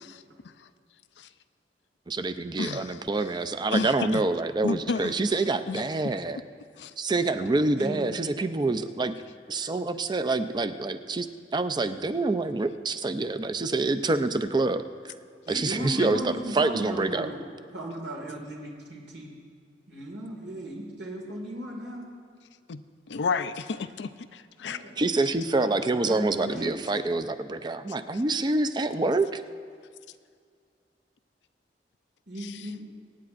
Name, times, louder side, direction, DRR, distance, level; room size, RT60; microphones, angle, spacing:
voice 1, 2.1-6.4 7.0-9.1 9.5-11.3 11.5-15.1 15.5-17.3 25.0-29.4, right 3 dB, 25° right, 10 dB, 0.5 m, -27 dB
voice 2, 2.6-3.0 3.7-4.2 4.6-5.1 5.7-5.8 6.8-6.9 16.0-16.1 22.7-22.8 23.1-24.8 32.4-32.6, left 4 dB, 90° left, 12 dB, 0.5 m, -31 dB
voice 3, 7.8-8.3 15.5-17.4 17.7-19.4 19.9-22.1 24.7-25.0 25.6-26.8 32.3-32.9, equal, 80° right, -1 dB, 2.0 m, -36 dB
24.5 x 9.6 x 2.5 m, 2.1 s
head